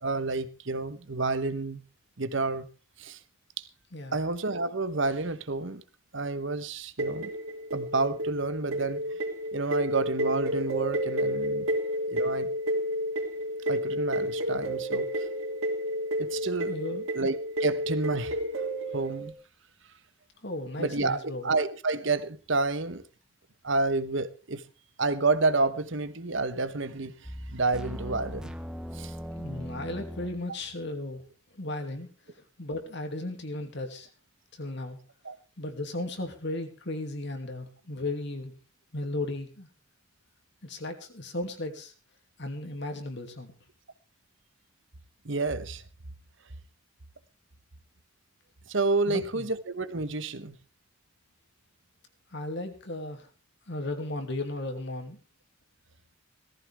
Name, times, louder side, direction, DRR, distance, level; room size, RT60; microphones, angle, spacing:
voice 1, 0.0-1.8 2.2-2.7 3.0-3.2 3.6-3.7 4.1-5.8 6.1-7.3 7.7-9.2 9.5-11.7 12.1-12.5 13.7-15.1 16.2-16.8 17.1-18.4 18.9-19.3 20.8-23.0 23.6-24.6 25.0-28.5 28.9-29.1 30.5-30.6 35.2-35.4 45.2-45.8 48.7-50.6, right 3 dB, 60° right, 1.2 m, -29 dB
sound 1, 7.0-19.3, equal, 85° right, 3.1 m, -31 dB
voice 2, 16.7-17.1 20.4-21.5 29.4-31.2 31.5-32.1 32.6-34.1 34.6-35.0 35.6-38.5 38.9-39.7 40.6-41.9 42.4-43.5 49.1-49.5 52.3-53.3 53.7-55.2, left 2 dB, 55° left, 2.6 m, -35 dB
sound 2, 27.2-30.4, equal, 5° right, 0.8 m, -39 dB
18.0 x 15.0 x 3.5 m
head